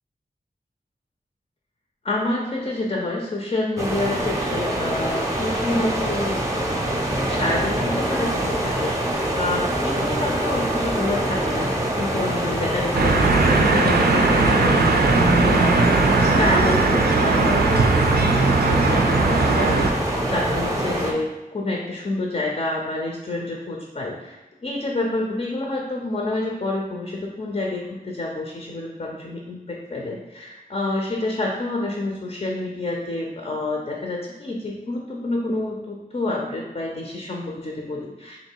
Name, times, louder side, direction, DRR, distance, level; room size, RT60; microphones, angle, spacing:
voice 1, 2.0-6.5 7.2-38.4, left 2 dB, 40° left, -1 dB, 0.5 m, -28 dB
sound 1, 3.8-21.1, right 1 dB, 20° right, 0.6 m, -25 dB
sound 2, 12.9-19.9, right 3 dB, 80° right, 0.4 m, -19 dB
3.1 x 2.6 x 4.4 m, 1.1 s
wide cardioid pair, 85°, 16 cm